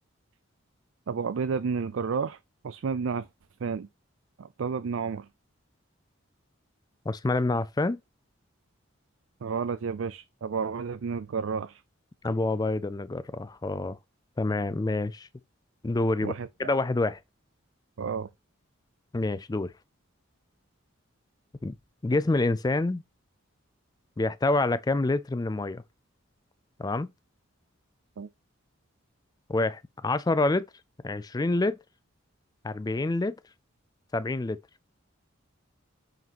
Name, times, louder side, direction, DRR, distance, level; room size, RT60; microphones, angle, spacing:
voice 1, 1.1-2.4 2.6-3.3 3.6-3.9 4.4-5.3 9.4-11.8 16.2-16.7 18.0-18.3 28.2-28.3, right 5 dB, 70° right, 0.4 m, -31 dB
voice 2, 7.1-8.0 12.2-14.0 14.4-15.3 15.8-16.3 16.6-17.2 19.1-19.7 21.6-21.8 22.0-23.0 24.2-25.8 26.8-27.1 29.5-30.7 31.0-31.8 32.6-33.3 34.1-34.6, left 2 dB, 20° left, 0.4 m, -27 dB
9.3 x 4.0 x 2.9 m
head